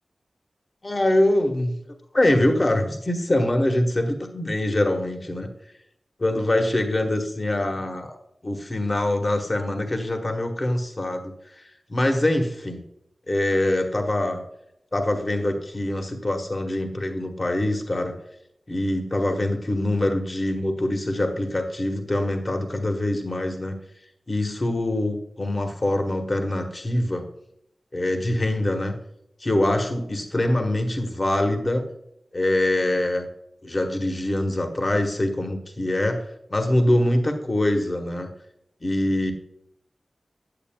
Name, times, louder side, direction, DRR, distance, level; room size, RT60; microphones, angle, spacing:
voice 1, 0.8-1.8 2.1-5.5 6.2-8.2 8.4-11.6 11.9-12.8 13.3-14.4 14.9-18.1 18.7-23.8 24.3-27.2 27.9-29.0 29.4-31.9 32.3-33.3 33.6-36.2 36.5-38.3 38.8-39.3, left 1 dB, 35° left, 4 dB, 1.1 m, -24 dB
8.7 x 8.1 x 2.2 m, 0.79 s
wide cardioid pair, 80°, 0 cm